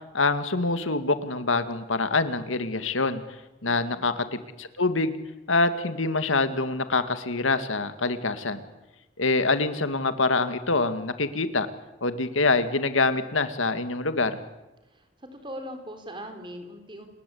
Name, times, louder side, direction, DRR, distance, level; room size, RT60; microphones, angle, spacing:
voice 1, 0.1-3.2 3.6-4.1 4.6-5.1 5.5-8.6 9.2-11.7 12.0-14.4, left 3 dB, 85° left, 10 dB, 2.0 m, -25 dB
voice 2, 3.6-4.0 14.9-17.1, equal, 25° right, 7 dB, 4.1 m, -40 dB
29.0 x 20.5 x 8.6 m, 1.0 s
head